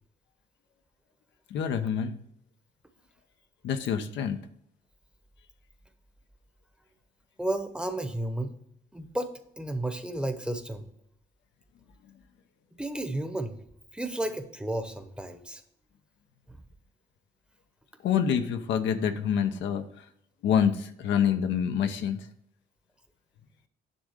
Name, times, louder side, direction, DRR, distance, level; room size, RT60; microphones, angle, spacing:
voice 1, 1.5-2.2 3.6-4.4 18.0-19.8 20.4-22.2, left 8 dB, 85° left, 7 dB, 0.8 m, -26 dB
voice 2, 7.4-8.5 8.9-10.8 12.8-13.6 13.9-15.6 16.5-16.6, right 1 dB, 5° right, 7 dB, 0.9 m, -32 dB
9.9 x 3.6 x 6.5 m, 0.72 s
cardioid pair, 100°, 18 cm